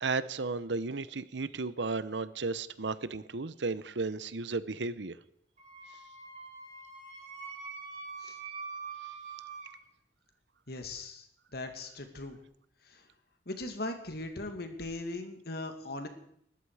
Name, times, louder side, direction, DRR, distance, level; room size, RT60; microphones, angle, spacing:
voice 1, 0.0-5.2, right 3 dB, 90° right, 15 dB, 0.9 m, -34 dB
Wind instrument woodwind instrument, 5.6-9.7, right 5 dB, 40° right, 5.0 m, -44 dB
voice 2, 10.7-11.3 11.5-12.4 12.9-13.0 13.5-16.1, left 2 dB, 60° left, 6 dB, 2.4 m, -39 dB
20.0 x 14.0 x 4.9 m, 0.70 s
head